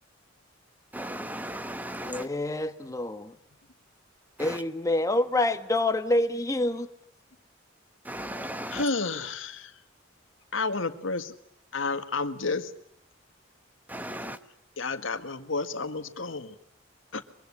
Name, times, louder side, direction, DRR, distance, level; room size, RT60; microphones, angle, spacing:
voice 1, 0.9-2.3 4.4-4.6 8.0-8.9 13.9-14.4, right 1 dB, 10° right, 10 dB, 1.2 m, -36 dB
voice 2, 2.1-3.4 4.4-6.9, left 2 dB, 15° left, 8 dB, 1.4 m, -27 dB
voice 3, 8.7-9.7 10.5-11.3 11.7-12.7 14.8-16.5 17.1-17.2, left 3 dB, 75° left, 9 dB, 1.8 m, -31 dB
24.0 x 24.0 x 9.8 m, 0.72 s
head